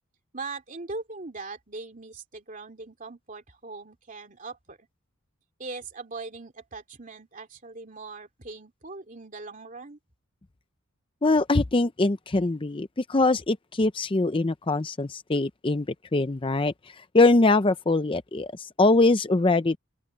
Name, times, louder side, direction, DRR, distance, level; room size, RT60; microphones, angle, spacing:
voice 1, 0.3-4.9 5.6-10.0, right 3 dB, 40° right, 2.8 m, -40 dB
voice 2, 11.2-15.9 16.1-16.7 17.1-19.8, left 2 dB, 25° left, 0.5 m, -22 dB
open air
head